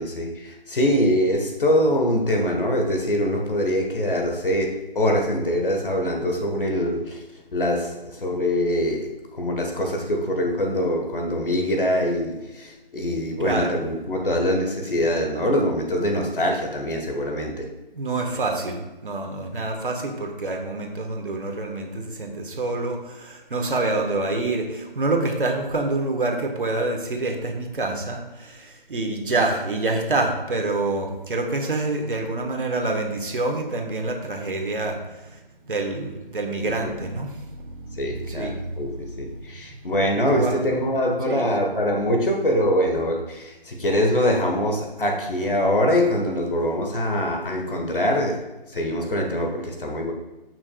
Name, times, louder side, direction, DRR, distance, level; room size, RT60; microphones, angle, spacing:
voice 1, 0.0-7.2 7.5-17.7 36.6-37.0 38.0-50.1, equal, 65° left, 2 dB, 1.5 m, -24 dB
voice 2, 13.4-13.8 17.9-35.4 35.7-39.2 40.3-40.6 41.2-41.5, right 2 dB, 65° right, 3 dB, 1.5 m, -27 dB
14.0 x 6.1 x 2.4 m, 1.1 s
figure-of-eight pair, 155°, 29 cm